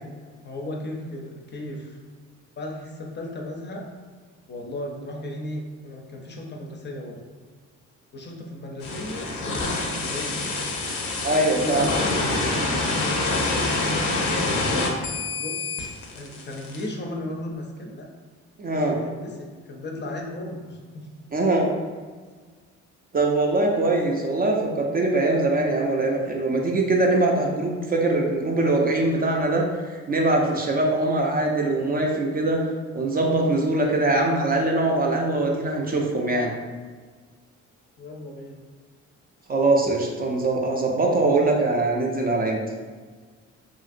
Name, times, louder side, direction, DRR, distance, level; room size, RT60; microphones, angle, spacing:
voice 1, 0.4-2.0 2.6-3.8 4.5-7.2 8.1-10.4 11.6-12.6 13.2-15.8 16.1-18.1 18.7-21.1 38.0-38.6, left 1 dB, 35° left, 0 dB, 0.5 m, -35 dB
sound 1, 8.8-16.8, left 2 dB, 90° left, 0.6 m, -26 dB
voice 2, 11.2-12.0 18.6-19.0 21.3-21.7 23.1-32.6 32.9-36.5 39.5-42.6, right 2 dB, 30° right, 0 dB, 0.4 m, -22 dB
2.8 x 2.5 x 2.5 m, 1.5 s
cardioid pair, 90°, 30 cm